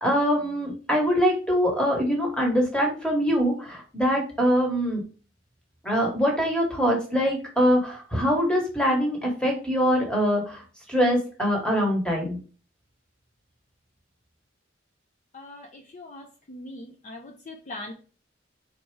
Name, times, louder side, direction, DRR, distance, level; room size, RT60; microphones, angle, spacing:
voice 1, 0.0-5.0 5.8-10.6 10.9-12.4, equal, 5° left, 0 dB, 1.2 m, -23 dB
voice 2, 15.3-17.9, left 2 dB, 40° left, 2 dB, 0.5 m, -41 dB
4.1 x 3.3 x 3.2 m, 0.37 s
head